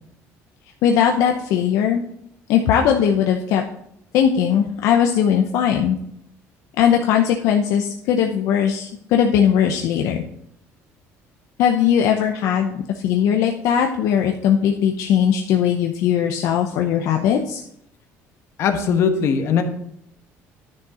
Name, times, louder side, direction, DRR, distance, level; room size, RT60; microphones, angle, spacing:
voice 1, 0.8-2.0 2.5-3.6 4.1-6.0 6.8-10.2 11.6-17.6, left 8 dB, 70° left, 3 dB, 0.7 m, -19 dB
voice 2, 18.6-19.6, left 6 dB, 55° left, 6 dB, 1.2 m, -19 dB
10.0 x 6.4 x 4.2 m, 0.75 s
cardioid pair, 135°, 6 cm